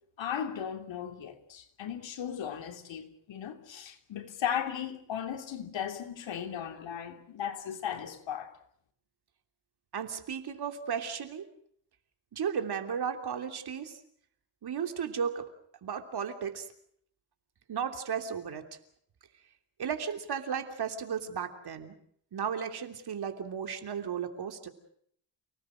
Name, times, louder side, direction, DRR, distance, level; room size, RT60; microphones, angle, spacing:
voice 1, 0.2-8.5, left 9 dB, 70° left, 3.2 m, -36 dB
voice 2, 9.9-11.5 12.3-14.0 14.6-15.5 15.8-16.7 17.7-18.7 19.8-21.9 22.3-24.7, right 7 dB, 55° right, 3.2 m, -34 dB
30.0 x 19.0 x 6.4 m
cardioid pair, 130°, 46 cm